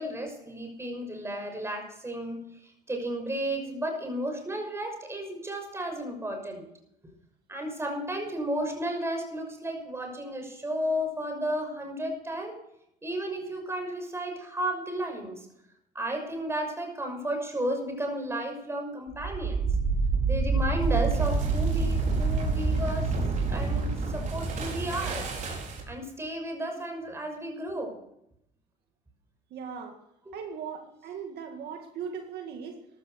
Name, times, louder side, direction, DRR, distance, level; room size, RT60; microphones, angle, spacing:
voice 1, 0.0-6.7 7.5-12.6 13.0-15.5 15.9-19.7 20.2-23.1 23.5-25.3 25.9-28.0 30.3-30.4, right 1 dB, 15° right, 3 dB, 6.3 m, -33 dB
sound 1, 19.1-26.0, right 4 dB, 50° right, 5.3 m, -27 dB
voice 2, 29.5-30.0 30.3-32.8, right 6 dB, 70° right, 4 dB, 2.1 m, -38 dB
14.5 x 13.0 x 6.5 m, 0.77 s
cardioid pair, 110°, 17 cm